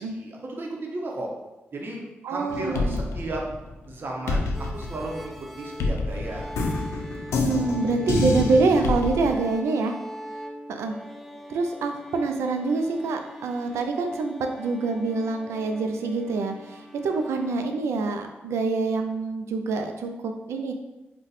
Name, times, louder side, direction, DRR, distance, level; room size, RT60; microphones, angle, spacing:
voice 1, 0.0-1.3 1.7-2.0 2.3-3.5 3.9-6.5, right 2 dB, 50° right, 0 dB, 0.7 m, -34 dB
voice 2, 2.2-3.0 7.4-10.0 10.7-10.9 11.5-20.7, right 3 dB, 80° right, 5 dB, 0.3 m, -26 dB
sound 1, 2.5-3.9 4.3-9.4, left 3 dB, 80° left, 0.4 m, -27 dB
sound 2, 4.5-17.7, equal, ahead, 0.3 m, -42 dB
2.5 x 2.2 x 4.0 m, 1.0 s
supercardioid pair, 45°, 5 cm